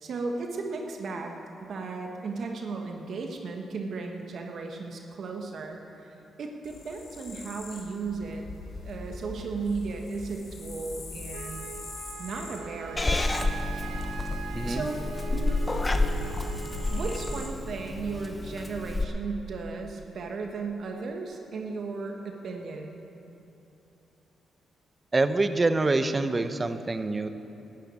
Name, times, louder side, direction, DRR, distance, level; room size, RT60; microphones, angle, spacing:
voice 1, 0.0-8.4 8.8-11.7 12.2-13.4 14.7-15.7 16.9-23.0, right 4 dB, 65° right, 2 dB, 1.5 m, -35 dB
sound 1, 6.6-17.5, left 3 dB, 65° left, 2.7 m, -44 dB
Wind instrument woodwind instrument, 11.3-17.6, right 7 dB, 85° right, 0.8 m, -42 dB
Purr / Meow, 13.0-19.0, left 2 dB, 25° left, 0.9 m, -29 dB
voice 2, 14.5-14.9 25.1-27.3, right 2 dB, 30° right, 10 dB, 0.9 m, -25 dB
13.0 x 9.1 x 8.9 m, 2.9 s
cardioid pair, 65°, 0 cm